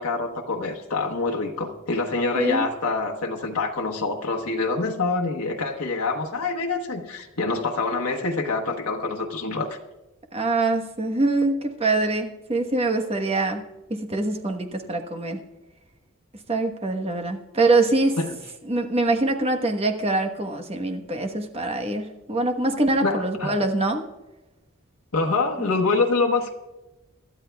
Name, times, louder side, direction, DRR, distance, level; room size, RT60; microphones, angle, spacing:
voice 1, 0.0-9.8 18.2-18.3 23.0-23.5 25.1-26.5, left 3 dB, 85° left, 1 dB, 1.2 m, -26 dB
voice 2, 2.3-2.7 10.3-13.6 13.9-15.4 16.5-18.2 18.6-24.0 25.6-25.7, right 2 dB, 30° right, 4 dB, 1.2 m, -24 dB
25.0 x 12.5 x 2.3 m, 1.0 s
head